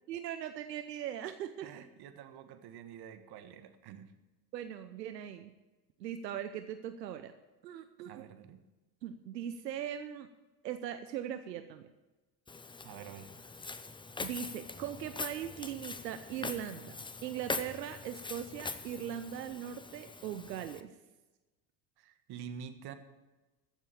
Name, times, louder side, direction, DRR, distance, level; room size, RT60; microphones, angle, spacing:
voice 1, 0.1-1.7 4.5-5.5 6.0-7.3 7.6-8.2 9.0-10.3 10.6-11.8 14.2-20.9, right 10 dB, 85° right, 9 dB, 0.8 m, -40 dB
voice 2, 1.6-4.1 8.0-8.6 12.8-13.3 22.0-22.9, right 8 dB, 50° right, 9 dB, 1.5 m, -47 dB
Walk footsteps, 12.5-20.8, left 3 dB, 10° left, 0.7 m, -43 dB
14.0 x 7.4 x 7.0 m, 1.1 s
hypercardioid pair, 75°, 49 cm